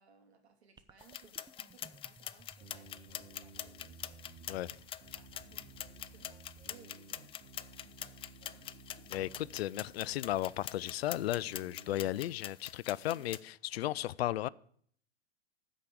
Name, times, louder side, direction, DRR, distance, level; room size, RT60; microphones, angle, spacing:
voice 1, 0.0-4.3 5.1-7.3 8.3-8.8 9.4-9.5 13.1-13.3, right 6 dB, 80° right, 2.9 m, -63 dB
sound 1, 0.8-7.3, right 3 dB, 10° right, 0.7 m, -61 dB
sound 2, 1.0-13.4, left 11 dB, 20° left, 0.4 m, -45 dB
sound 3, 2.6-12.1, right 4 dB, 50° right, 2.3 m, -56 dB
voice 2, 9.1-14.5, left 14 dB, 75° left, 0.5 m, -35 dB
13.0 x 5.1 x 8.4 m
hypercardioid pair, 110°, 32 cm